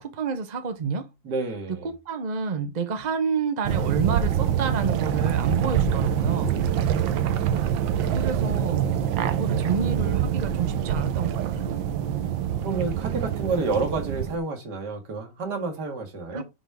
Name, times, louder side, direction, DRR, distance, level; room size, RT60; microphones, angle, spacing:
voice 1, 0.0-1.1 1.7-6.6 8.1-9.0 9.4-11.7 16.3-16.4, right 5 dB, 35° right, 0.7 m, -29 dB
voice 2, 1.2-1.9 12.6-16.4, right 3 dB, 60° right, 2.3 m, -30 dB
sound 1, 3.6-14.4, right 9 dB, 80° right, 1.5 m, -25 dB
6.4 x 4.0 x 4.7 m
omnidirectional pair, 2.1 m